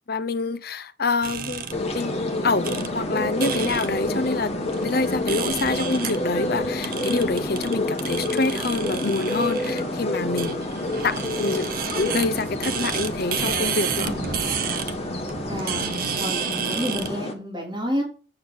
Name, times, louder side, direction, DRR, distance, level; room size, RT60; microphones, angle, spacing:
voice 1, 0.1-1.7 1.9-2.1 2.4-4.5 4.8-11.7 11.9-14.1, left 3 dB, 55° left, 0.6 m, -26 dB
sound 1, 1.2-17.2, right 7 dB, 50° right, 0.9 m, -32 dB
sound 2, 1.7-17.3, left 1 dB, 35° left, 1.5 m, -29 dB
voice 2, 14.0-14.3 15.5-15.9 16.2-18.0, equal, 25° right, 3.7 m, -29 dB
8.8 x 6.0 x 6.3 m
head